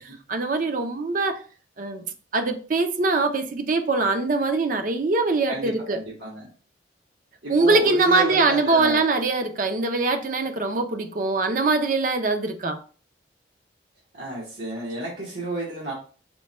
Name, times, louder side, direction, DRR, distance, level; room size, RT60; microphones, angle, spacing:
voice 1, 0.3-1.4 1.8-2.0 2.3-6.0 7.5-12.8, right 3 dB, 45° right, 0.5 m, -22 dB
voice 2, 5.5-6.5 7.4-9.0 14.1-15.9, right 1 dB, 80° right, 1.2 m, -31 dB
4.4 x 2.2 x 4.1 m
head